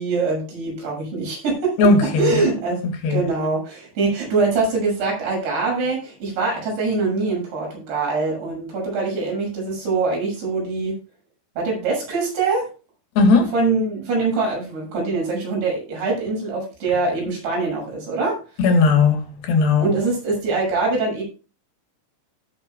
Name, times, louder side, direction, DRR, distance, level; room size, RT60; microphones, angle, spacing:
voice 1, 0.0-1.8 2.2-11.0 11.6-12.7 13.5-18.4 19.8-21.2, right 3 dB, 85° right, 8.8 m, -23 dB
voice 2, 1.8-2.5 3.0-3.2 13.2-13.5 18.6-19.9, left 3 dB, 75° left, 4.1 m, -17 dB
17.0 x 8.2 x 2.3 m
omnidirectional pair, 4.8 m